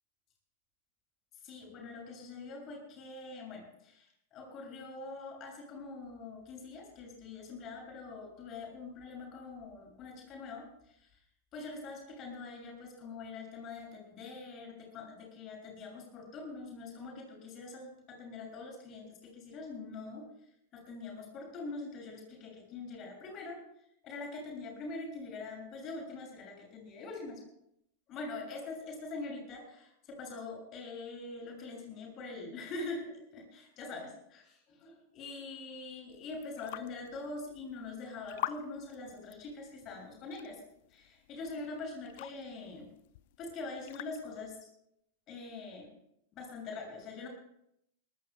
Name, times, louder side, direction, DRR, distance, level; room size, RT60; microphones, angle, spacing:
voice 1, 1.4-11.1 11.5-20.3 20.7-23.6 24.0-27.4 28.1-33.0 33.3-40.6 40.9-42.9 43.4-44.5 45.3-45.9 46.3-47.3, left 3 dB, 35° left, 0 dB, 6.9 m, -44 dB
sound 1, 36.1-44.6, left 15 dB, 50° left, 0.5 m, -47 dB
23.0 x 19.5 x 2.3 m, 0.76 s
figure-of-eight pair, 90°, 0 cm